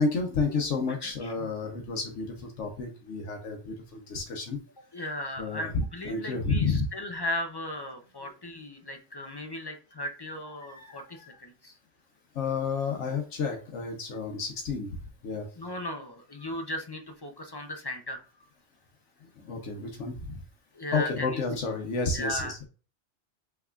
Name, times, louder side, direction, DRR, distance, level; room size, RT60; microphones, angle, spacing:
voice 1, 0.0-4.6 5.4-6.9 8.2-8.3 10.7-11.4 12.3-15.0 15.2-15.5 19.4-20.4 20.9-22.7, left 4 dB, 80° left, 2 dB, 1.2 m, -31 dB
voice 2, 0.9-1.5 4.9-11.7 15.6-18.2 20.7-21.4 22.1-22.5, left 1 dB, 35° left, 5 dB, 0.4 m, -37 dB
5.7 x 3.5 x 2.3 m, 0.36 s
omnidirectional pair, 1.2 m